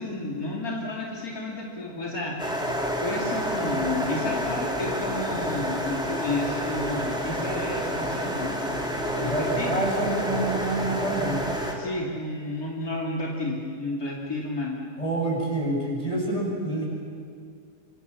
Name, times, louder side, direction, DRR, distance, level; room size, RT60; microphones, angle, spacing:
voice 1, 0.0-2.4 3.0-8.5 9.2-9.7 11.7-14.8, left 2 dB, 65° left, -3 dB, 3.1 m, -31 dB
sound 1, 2.4-11.7, equal, 5° right, 3.3 m, -29 dB
voice 2, 9.2-11.4 15.0-16.9, right 1 dB, 20° left, -2 dB, 7.0 m, -27 dB
27.0 x 26.0 x 7.1 m, 2.3 s
omnidirectional pair, 1.7 m